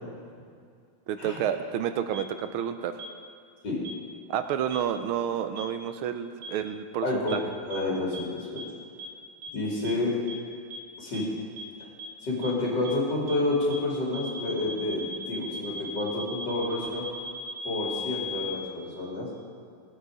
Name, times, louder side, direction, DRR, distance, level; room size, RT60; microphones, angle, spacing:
voice 1, 1.1-2.9 4.3-7.4, right 9 dB, 80° right, 9 dB, 1.5 m, -30 dB
sound 1, 2.1-2.2 3.0-3.1 3.8-3.9 4.7-4.8 5.6-5.7 6.4-6.5 7.3-7.4 7.7-7.8 8.1-8.2 8.6-8.7 9.0-9.1 9.4-9.5 9.8-9.9 10.3-10.4 10.7-10.8 11.1-11.2 11.6-11.7 12.0-12.1 12.4-12.5 12.8-12.9 13.3-13.4 13.7-13.8 14.1-18.5, left 1 dB, 45° right, 1.8 m, -37 dB
voice 2, 7.0-7.4 7.7-8.6 9.5-10.2 11.0-11.3 12.2-17.1 17.6-19.3, left 2 dB, 50° left, -4 dB, 3.1 m, -29 dB
18.0 x 8.2 x 4.9 m, 2.3 s
omnidirectional pair, 2.4 m